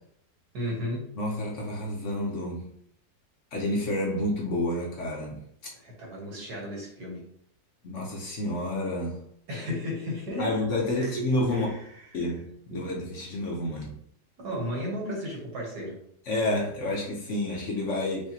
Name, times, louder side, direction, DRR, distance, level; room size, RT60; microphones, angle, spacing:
voice 1, 0.5-1.1 5.7-7.2 9.5-10.6 10.8-12.0 12.7-12.8 14.4-16.0, equal, 75° right, -1 dB, 1.7 m, -34 dB
voice 2, 1.2-2.7 3.5-5.4 7.8-9.2 10.4-11.7 12.1-13.9 16.3-18.3, left 1 dB, 55° left, -1 dB, 1.0 m, -29 dB
4.9 x 2.7 x 2.8 m, 0.68 s
omnidirectional pair, 1.7 m